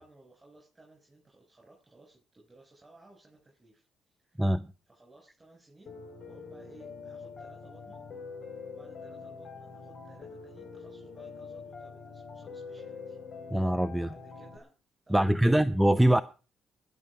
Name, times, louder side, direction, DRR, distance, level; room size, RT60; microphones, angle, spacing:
voice 1, 0.0-4.5 4.9-5.9 6.2-8.0 8.7-13.2 13.9-14.7 15.0-15.6, right 2 dB, 20° right, 6.4 m, -58 dB
Piano, 5.9-14.6, left 4 dB, 55° left, 2.9 m, -45 dB
voice 2, 13.5-14.1 15.1-16.2, right 1 dB, 5° right, 0.6 m, -23 dB
20.0 x 7.3 x 5.0 m
supercardioid pair, 60°, 0 cm